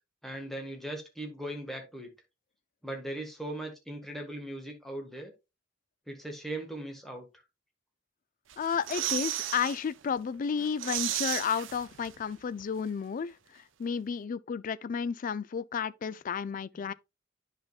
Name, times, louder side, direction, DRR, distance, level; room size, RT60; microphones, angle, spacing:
voice 1, 0.2-2.1 2.8-5.3 6.1-7.3 16.7-16.8, right 1 dB, ahead, 1.6 m, -39 dB
sound 1, 8.5-9.8 10.2-10.3 10.6-12.3 12.6-12.7, right 12 dB, 80° right, 0.6 m, -34 dB
voice 2, 8.6-16.9, left 6 dB, 45° left, 0.4 m, -32 dB
10.5 x 5.1 x 2.4 m
head